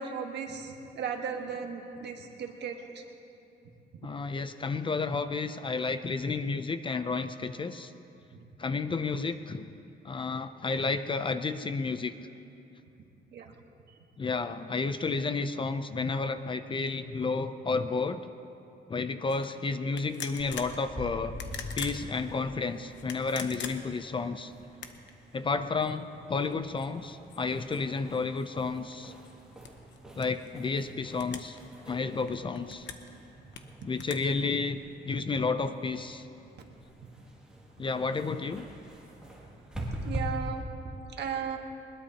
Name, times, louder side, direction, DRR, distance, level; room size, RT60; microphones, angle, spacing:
voice 1, 0.0-3.0 13.3-13.5 40.0-40.6 40.9-41.6, right 6 dB, 70° right, 3 dB, 1.5 m, -36 dB
voice 2, 4.0-7.9 8.6-9.7 10.0-12.1 14.2-18.2 18.9-21.4 21.7-24.5 25.3-29.1 30.1-31.6 31.9-32.9 33.8-36.3 37.8-38.6, left 4 dB, 25° left, 11 dB, 0.5 m, -31 dB
sound 1, 19.3-19.5 20.0-20.8 21.3-22.0 22.9-24.1 24.7-25.1 25.8-25.9 26.3-28.5 28.9-30.5 31.1-31.6 31.9-33.1 33.5-34.1, left 7 dB, 85° left, 1.0 m, -43 dB
sound 2, 20.4-40.2, equal, 5° right, 2.2 m, -46 dB
21.0 x 21.0 x 2.9 m, 2.7 s
wide cardioid pair, 155°, 19 cm